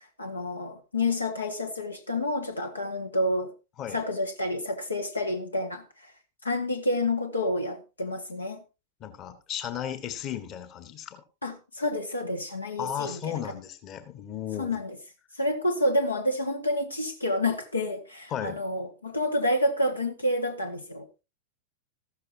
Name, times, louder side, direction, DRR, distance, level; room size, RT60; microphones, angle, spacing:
voice 1, 0.2-3.5 3.9-6.1 6.4-8.6 11.4-13.5 14.6-15.0 15.4-21.1, left 1 dB, 80° left, 1.7 m, -29 dB
voice 2, 9.0-11.2 12.8-14.8 18.3-18.6, left 9 dB, 35° left, 1.6 m, -35 dB
14.5 x 13.0 x 2.8 m
figure-of-eight pair, 90°, 0 cm